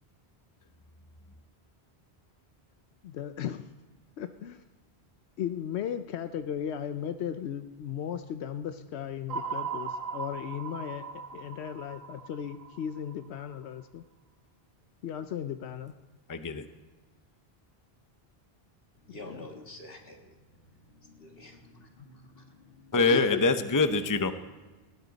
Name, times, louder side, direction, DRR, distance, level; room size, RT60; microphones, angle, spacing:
voice 1, 3.0-3.6 4.2-4.6 5.4-11.0 11.3-14.0 15.0-15.9 19.2-19.5 23.1-23.4, left 9 dB, 85° left, 9 dB, 0.9 m, -36 dB
sound 1, 9.3-13.5, right 6 dB, 65° right, 1.2 m, -38 dB
voice 2, 16.3-16.6 22.9-24.3, left 3 dB, 20° left, 9 dB, 0.7 m, -24 dB
voice 3, 19.1-20.4 20.9-23.2, left 1 dB, 60° left, 2 dB, 2.3 m, -47 dB
19.5 x 16.5 x 4.0 m, 1.3 s
omnidirectional pair, 1.1 m